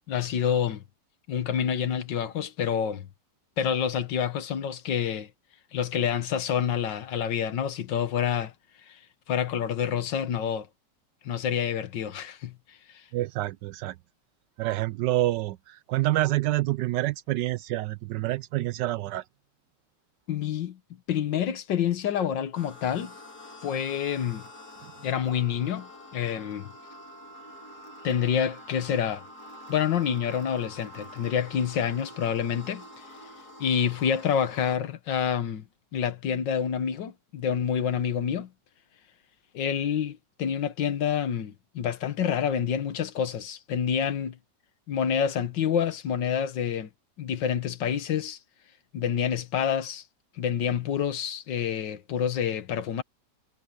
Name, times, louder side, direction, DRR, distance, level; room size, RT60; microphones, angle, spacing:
voice 1, 0.1-0.8 1.3-3.1 3.6-5.3 5.7-8.5 8.9-9.0 9.3-10.7 11.2-12.5 12.9-13.0 20.3-20.8 21.1-23.1 23.6-24.4 25.0-26.7 28.0-29.2 29.7-32.8 33.6-35.7 35.9-38.5 39.5-44.4 44.9-46.9 47.2-48.4 48.9-50.0 50.4-53.0, left 8 dB, 85° left, 1.9 m, -28 dB
voice 2, 13.1-13.9 14.6-19.2, right 16 dB, 80° right, 1.2 m, -27 dB
sound 1, 22.5-34.8, left 1 dB, 60° left, 4.8 m, -47 dB
omnidirectional pair, 1.9 m